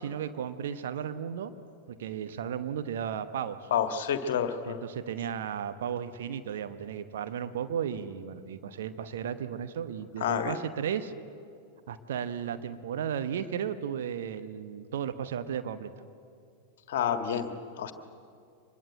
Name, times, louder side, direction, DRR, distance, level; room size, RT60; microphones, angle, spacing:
voice 1, 0.0-1.5 1.9-3.7 4.7-11.1 11.9-15.9, right 8 dB, 60° right, 10 dB, 1.1 m, -34 dB
voice 2, 3.7-4.8 10.2-10.6 16.9-17.5 17.8-17.9, left 8 dB, 55° left, 8 dB, 1.7 m, -28 dB
25.0 x 21.5 x 8.0 m, 2.4 s
figure-of-eight pair, 90°, 0 cm